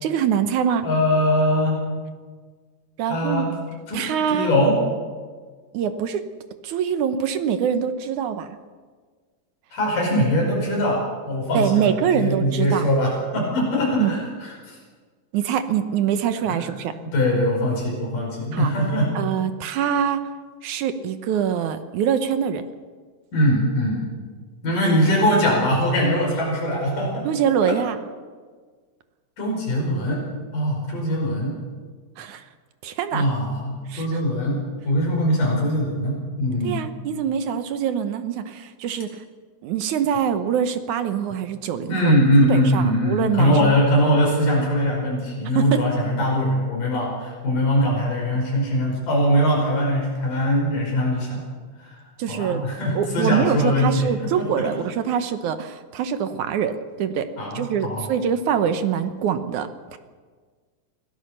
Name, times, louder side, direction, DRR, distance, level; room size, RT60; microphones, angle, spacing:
voice 1, 0.0-0.9 3.0-3.5 3.9-4.5 5.7-6.2 6.6-8.5 11.5-12.9 14.0-14.2 15.3-16.9 18.5-18.7 19.1-20.3 20.6-22.6 27.2-28.0 32.2-32.4 32.8-33.3 33.9-34.2 36.6-39.2 39.6-42.2 42.4-43.7 45.5-45.9 52.2-52.6 52.9-57.3 57.5-60.0, right 8 dB, 70° right, 9 dB, 2.2 m, -24 dB
voice 2, 0.8-1.8 3.0-3.5 3.9-4.8 9.7-14.8 16.5-16.6 17.0-19.1 23.3-24.0 24.6-27.3 27.6-27.7 29.4-30.2 30.5-31.5 33.1-34.6 34.8-36.8 41.9-51.5 51.8-51.9 52.3-54.7 57.4-58.1, equal, 70° left, -1 dB, 6.7 m, -22 dB
25.5 x 17.0 x 6.7 m, 1.5 s
omnidirectional pair, 4.0 m